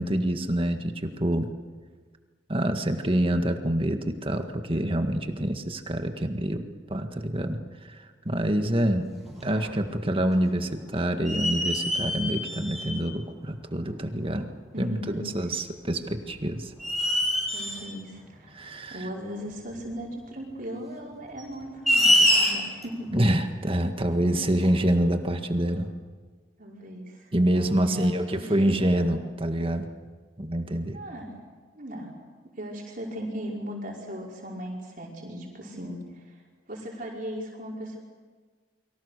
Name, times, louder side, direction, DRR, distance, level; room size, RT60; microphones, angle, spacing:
voice 1, 0.0-1.5 2.5-6.6 6.9-9.1 9.4-14.5 14.8-16.7 18.5-19.1 23.1-25.9 27.3-29.9 30.4-31.0, right 1 dB, 30° right, 6 dB, 1.8 m, -26 dB
voice 2, 8.4-8.7 14.7-15.3 17.5-18.6 18.9-23.1 24.3-24.4 26.6-29.1 30.9-31.3 31.7-32.2 32.6-36.4 36.7-38.0, equal, 50° right, -2 dB, 5.3 m, -37 dB
sound 1, 8.7-8.8 9.3-10.0 10.3-10.4 11.3-13.1 14.1-14.2 16.0-16.3 16.8-17.9 19.7-19.8 21.4-22.8, left 1 dB, ahead, 7.5 m, -24 dB
30.0 x 24.0 x 6.8 m, 1.5 s
head